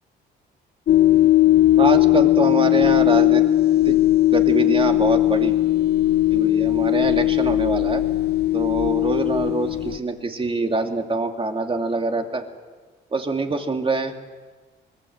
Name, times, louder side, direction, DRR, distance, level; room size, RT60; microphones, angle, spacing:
sound 1, 0.9-10.0, left 15 dB, 55° left, 0.7 m, -18 dB
voice 1, 1.8-3.5 3.9-4.0 4.3-5.6 6.3-8.0 8.5-12.4 13.1-14.1, right 3 dB, 25° right, 4 dB, 2.7 m, -24 dB
25.0 x 20.5 x 8.0 m, 1.4 s
cardioid pair, 90°, 20 cm